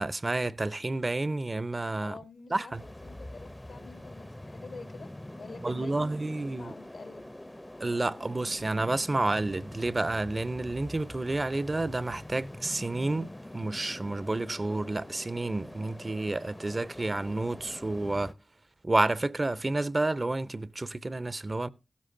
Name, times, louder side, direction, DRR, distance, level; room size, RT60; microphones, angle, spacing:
voice 1, 0.0-2.2 2.5-2.8 5.6-6.7 7.8-18.3 18.8-21.7, right 2 dB, 40° right, 0.6 m, -30 dB
voice 2, 2.0-7.3, left 4 dB, 80° left, 1.2 m, -48 dB
sound 1, 2.7-18.3, left 1 dB, 20° left, 0.6 m, -45 dB
15.5 x 13.0 x 2.6 m
cardioid pair, 45°, 0 cm